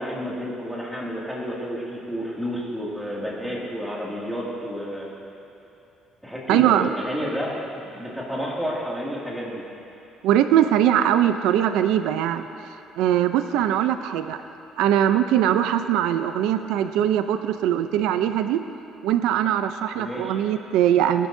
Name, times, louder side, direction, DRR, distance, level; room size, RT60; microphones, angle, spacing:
voice 1, 0.0-5.1 6.2-9.6 19.9-20.4, equal, ahead, -5 dB, 2.2 m, -30 dB
voice 2, 6.5-6.9 10.2-12.5 13.0-14.4 14.8-18.6 19.0-21.3, right 11 dB, 85° right, 9 dB, 0.4 m, -21 dB
20.5 x 12.0 x 2.7 m, 2.9 s
cardioid pair, 160°, 0 cm